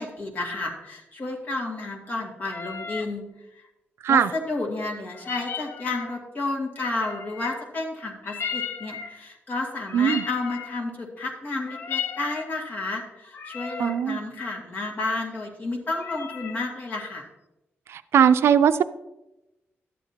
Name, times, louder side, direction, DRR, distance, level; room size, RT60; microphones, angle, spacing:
voice 1, 0.0-3.3 3.5-3.7 4.1-17.3, left 2 dB, 40° left, -1 dB, 2.0 m, -31 dB
sound 1, 2.4-3.1 5.1-6.2 6.8-7.7 8.2-9.2 9.9-10.8 11.5-12.5 13.2-14.0 15.9-16.6, left 6 dB, 60° left, 0.7 m, -35 dB
voice 2, 9.9-10.2 13.8-14.2 17.9-18.8, right 8 dB, 75° right, 12 dB, 0.4 m, -19 dB
12.5 x 9.4 x 2.8 m, 0.94 s
wide cardioid pair, 165°, 4 cm